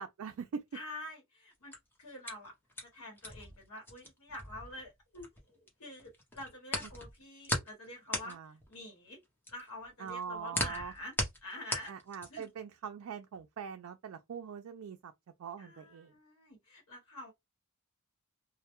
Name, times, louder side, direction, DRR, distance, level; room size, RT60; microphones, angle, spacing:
voice 1, 0.0-0.6 8.2-8.5 10.0-10.9 11.9-15.1 15.4-16.1, right 6 dB, 65° right, 0.3 m, -42 dB
voice 2, 0.7-2.5 2.9-8.4 8.7-9.2 9.5-11.1 11.4-11.9 12.3-12.5 15.6-17.3, left 1 dB, 70° left, 1.0 m, -47 dB
sound 1, 1.5-5.7 6.0-12.6, left 1 dB, 10° left, 0.6 m, -38 dB
2.1 x 2.1 x 2.9 m
head